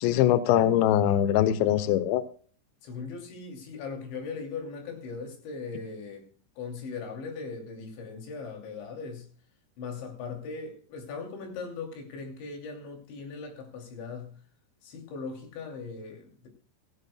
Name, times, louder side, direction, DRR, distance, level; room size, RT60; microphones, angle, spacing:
voice 1, 0.0-2.2, left 11 dB, 85° left, 13 dB, 2.6 m, -22 dB
voice 2, 2.8-6.3 6.6-9.3 9.8-14.4 14.8-16.5, left 4 dB, 65° left, 3 dB, 4.9 m, -39 dB
17.0 x 15.0 x 2.2 m, 0.42 s
omnidirectional pair, 5.9 m